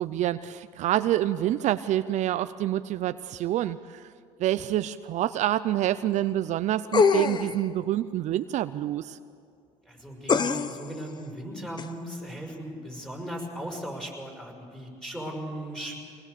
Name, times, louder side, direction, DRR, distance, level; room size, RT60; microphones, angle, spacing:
voice 1, 0.0-4.0 4.4-9.2, right 13 dB, 60° right, 12 dB, 0.6 m, -27 dB
sound 1, 6.9-7.6 10.3-10.9 11.8-11.9, left 5 dB, 35° left, 1.0 m, -23 dB
voice 2, 9.9-16.0, equal, 5° left, 1 dB, 5.9 m, -37 dB
23.5 x 19.5 x 6.8 m, 2.3 s
supercardioid pair, 95°, 13 cm